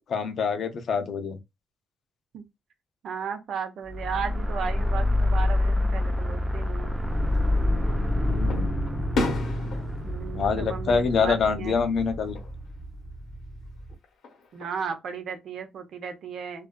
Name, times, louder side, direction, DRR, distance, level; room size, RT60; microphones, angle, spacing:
voice 1, 0.1-1.4 8.2-8.7 10.3-12.4, left 5 dB, 60° left, 0.6 m, -25 dB
voice 2, 3.0-6.9 10.0-11.8 14.5-16.7, right 6 dB, 65° right, 0.6 m, -35 dB
sound 1, 3.9-12.2, left 1 dB, 15° right, 0.5 m, -27 dB
sound 2, 6.8-13.9, equal, 15° left, 0.8 m, -33 dB
Fireworks, 7.3-8.0 8.5-11.6 11.9-12.5 14.0-14.9, left 2 dB, 75° left, 0.9 m, -34 dB
2.6 x 2.3 x 2.2 m
cardioid pair, 90°, 0 cm